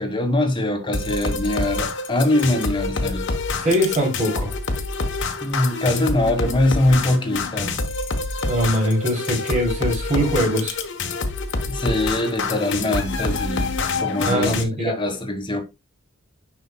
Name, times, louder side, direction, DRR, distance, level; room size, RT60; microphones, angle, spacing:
voice 1, 0.0-3.3 5.4-7.8 11.7-13.7 14.0-15.6, left 1 dB, 25° left, 1.5 m, -22 dB
sound 1, 0.9-14.6, left 3 dB, 55° left, 1.1 m, -26 dB
voice 2, 3.6-4.6 8.5-10.7 14.2-14.9, equal, 35° right, 3.1 m, -22 dB
9.2 x 5.6 x 2.3 m
head